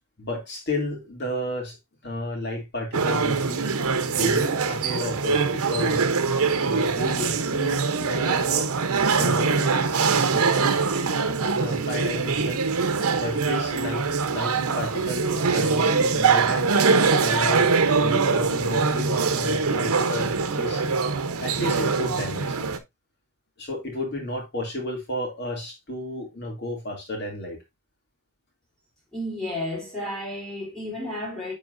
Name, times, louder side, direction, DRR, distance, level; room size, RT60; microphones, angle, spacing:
voice 1, 0.2-1.8 2.0-3.6 4.1-6.0 6.6-8.7 9.1-9.7 10.1-10.8 11.5-12.7 13.2-16.7 17.2-17.7 18.0-20.8 21.4-22.7 23.6-27.6, left 1 dB, 45° left, 2.7 m, -32 dB
sound 1, 2.9-22.8, right 4 dB, 85° right, 0.9 m, -23 dB
voice 2, 29.1-31.5, left 1 dB, 5° left, 3.5 m, -32 dB
10.0 x 4.6 x 2.6 m
head